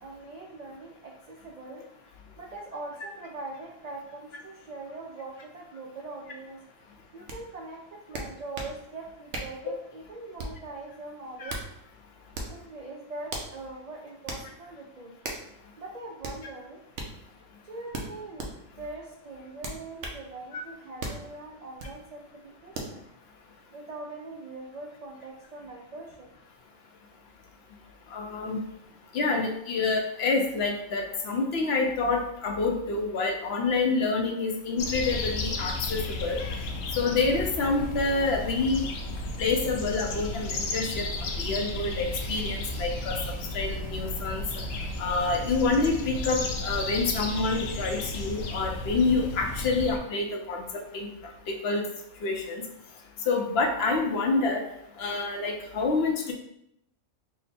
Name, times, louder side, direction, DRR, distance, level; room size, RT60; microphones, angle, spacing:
voice 1, 0.0-6.6 7.1-11.6 12.5-15.1 15.8-16.8 17.6-18.5 18.8-23.0 23.7-26.3 28.9-29.0, right 2 dB, 80° right, -1 dB, 0.3 m, -42 dB
sound 1, 7.3-7.4 8.1-8.8 9.3-9.6 10.4-10.7 11.3-11.7 12.3-12.6 13.3-13.5 14.3-14.5 15.2-15.5 16.2-16.4 16.9-17.1 17.9-18.5 19.6-20.2 21.0-21.2 21.8-22.0 22.7-22.9, right 2 dB, 65° right, 0.9 m, -36 dB
voice 2, 28.1-28.6 29.1-36.4 37.0-38.8 39.4-43.2 43.5-44.4 45.0-51.1 51.5-51.8 52.2-52.6 53.3-54.6 55.0-56.3, left 3 dB, 60° left, 2 dB, 0.7 m, -27 dB
sound 2, 34.8-50.0, left 2 dB, 85° left, 1.0 m, -33 dB
3.8 x 2.1 x 4.1 m, 0.78 s
omnidirectional pair, 1.3 m